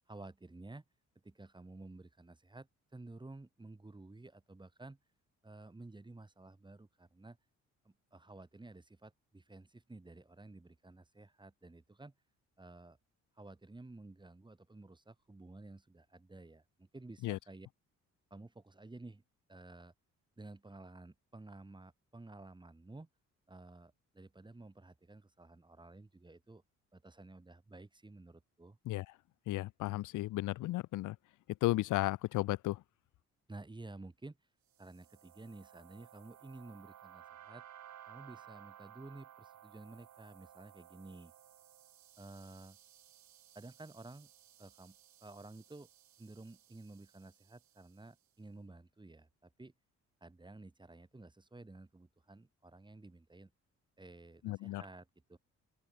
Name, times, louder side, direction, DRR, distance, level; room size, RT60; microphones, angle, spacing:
voice 1, 0.1-0.8 1.2-5.0 5.4-7.4 7.9-12.1 12.6-13.0 13.4-17.7 18.3-19.2 19.5-19.9 20.4-23.1 23.5-26.6 26.9-28.8 33.5-34.4 34.8-37.6 38.1-41.3 42.2-42.8 43.6-44.3 44.6-45.9 46.2-49.7 50.2-53.5 54.0-55.4, right 2 dB, 15° right, 3.4 m, -53 dB
voice 2, 29.5-31.2 31.6-32.8 54.4-54.8, left 17 dB, 85° left, 0.9 m, -34 dB
sound 1, 34.7-48.1, right 11 dB, 70° right, 5.3 m, -58 dB
open air
cardioid pair, 90°, 30 cm